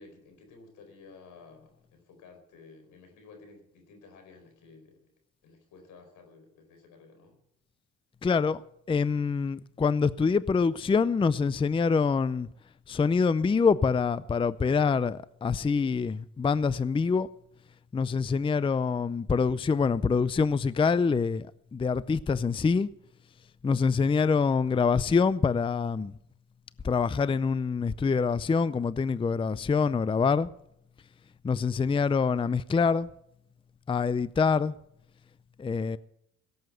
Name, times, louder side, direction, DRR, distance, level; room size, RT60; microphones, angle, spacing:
voice 1, 0.0-5.1 5.4-7.4, left 4 dB, 85° left, 4.7 m, -53 dB
voice 2, 8.2-8.6 8.9-12.5 12.9-17.3 17.9-22.9 23.6-26.1 26.8-30.5 31.4-33.1 33.9-34.7 35.6-36.0, left 5 dB, 20° left, 0.4 m, -25 dB
17.0 x 8.0 x 7.8 m
cardioid pair, 90°, 30 cm